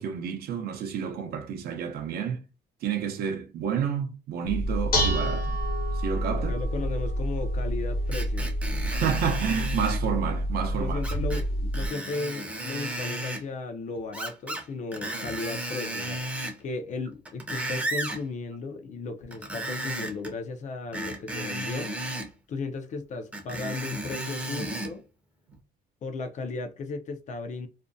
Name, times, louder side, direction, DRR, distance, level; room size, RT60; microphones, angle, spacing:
voice 1, 0.0-2.4 2.8-5.6 5.9-6.5 8.9-11.0, right 8 dB, 65° right, 0.6 m, -30 dB
Dishes pots and pans, 4.5-11.9, equal, 60° left, 1.0 m, -28 dB
voice 2, 6.3-8.5 10.8-16.2 16.6-21.9 22.5-25.1 26.0-27.7, left 3 dB, 45° left, 0.5 m, -35 dB
Screech, 8.1-10.0 11.0-11.4 11.7-13.4 14.1-14.6 14.9-16.6 17.1-18.2 19.3-20.3 20.9-22.3 23.3-24.9 25.5-25.6, right 1 dB, 10° right, 0.6 m, -34 dB
2.5 x 2.1 x 2.5 m
cardioid pair, 110°, 17 cm